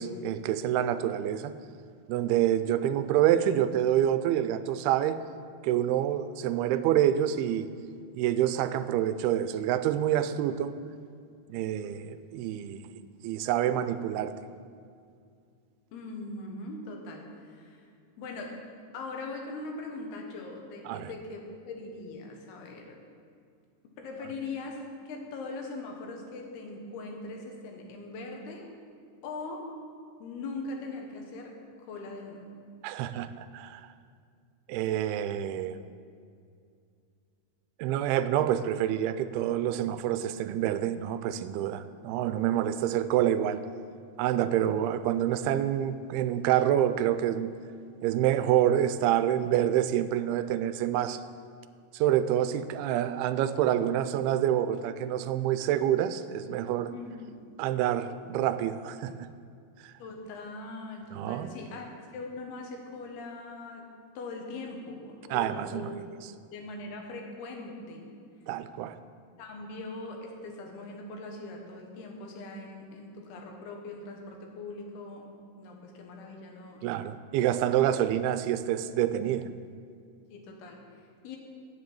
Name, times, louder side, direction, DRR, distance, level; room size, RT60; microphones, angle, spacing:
voice 1, 0.0-1.5 2.1-5.2 5.6-7.7 8.1-10.7 11.5-12.9 13.2-14.4 20.9-21.1 32.8-33.8 34.7-35.8 37.8-43.6 44.2-47.5 48.0-51.2 51.9-56.9 57.6-59.3 59.8-59.9 61.1-61.5 65.3-65.9 68.5-69.0 76.8-79.5, right 11 dB, 90° right, 12 dB, 2.5 m, -27 dB
voice 2, 15.9-17.9 18.2-18.6 18.9-23.0 24.0-24.8 25.1-28.7 29.2-29.7 30.2-32.5 56.9-57.2 57.6-58.2 60.0-61.9 62.1-63.9 64.1-66.0 66.5-68.2 69.4-75.3 75.6-76.9 80.3-81.4, left 3 dB, 85° left, 2 dB, 3.3 m, -41 dB
10.5 x 7.6 x 7.7 m, 2.3 s
omnidirectional pair, 4.4 m